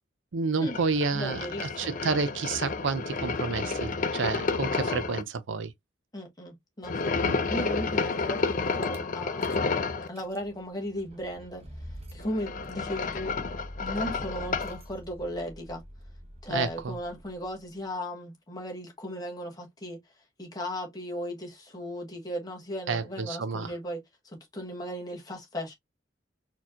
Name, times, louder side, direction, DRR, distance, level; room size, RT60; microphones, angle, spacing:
voice 1, 0.3-5.7 7.2-7.4 16.5-16.9 22.9-23.7, right 4 dB, 75° right, 0.5 m, -30 dB
sound 1, 0.7-5.2 6.8-10.1 12.2-14.8, left 4 dB, 40° left, 0.5 m, -30 dB
voice 2, 1.1-2.0 6.1-7.1 7.5-9.4 10.1-11.6 12.1-13.4 13.8-15.8 16.4-20.0 20.4-24.0 24.2-25.7, equal, 20° left, 1.2 m, -36 dB
Rattle / Car / Engine starting, 8.8-9.0 9.4-9.7 10.0-17.8, equal, 30° right, 0.8 m, -46 dB
4.2 x 2.8 x 2.3 m
head